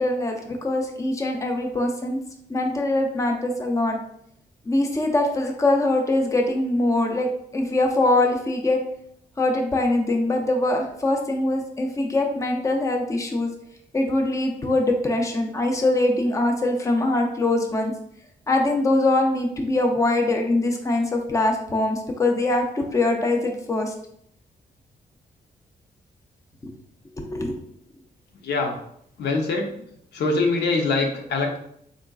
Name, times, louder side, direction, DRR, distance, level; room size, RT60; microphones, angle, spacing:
voice 1, 0.0-2.2 2.5-4.0 4.7-8.8 9.4-13.5 13.9-17.9 18.5-23.9 27.2-27.6, left 2 dB, 20° left, 3 dB, 0.6 m, -23 dB
voice 2, 28.4-28.7 29.2-29.7 30.1-31.6, left 3 dB, 90° left, 3 dB, 0.7 m, -23 dB
3.9 x 3.6 x 2.3 m, 0.71 s
cardioid pair, 110°, 17 cm